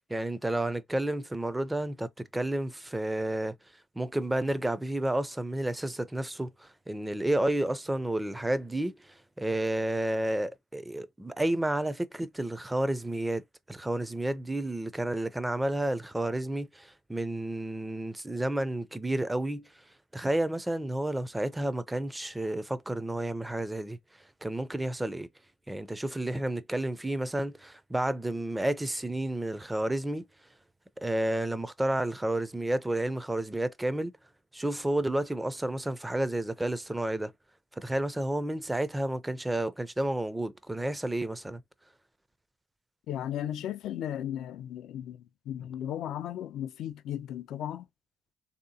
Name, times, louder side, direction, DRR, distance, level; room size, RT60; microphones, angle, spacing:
voice 1, 0.0-3.5 4.0-9.1 9.4-19.7 20.1-24.0 24.4-25.3 25.7-30.3 31.0-34.1 34.5-37.3 37.8-41.6, right 1 dB, 10° right, 0.4 m, -31 dB
voice 2, 43.1-47.9, left 11 dB, 80° left, 0.3 m, -36 dB
3.2 x 2.8 x 2.7 m
cardioid pair, 90°, 0 cm